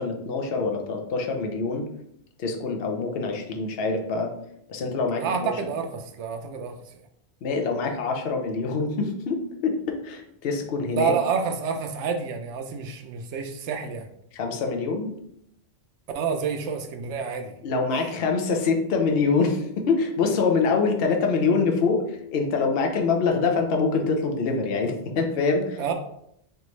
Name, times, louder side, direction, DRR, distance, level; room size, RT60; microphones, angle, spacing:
voice 1, 0.0-1.9 2.4-4.3 4.7-5.5 7.4-11.1 14.3-15.1 17.6-25.9, left 4 dB, 60° left, 3 dB, 0.8 m, -25 dB
voice 2, 5.1-6.8 11.0-14.1 16.1-17.5 18.0-18.1 25.8-25.9, right 6 dB, 85° right, 5 dB, 0.9 m, -28 dB
3.9 x 3.4 x 3.1 m, 0.74 s
omnidirectional pair, 1.2 m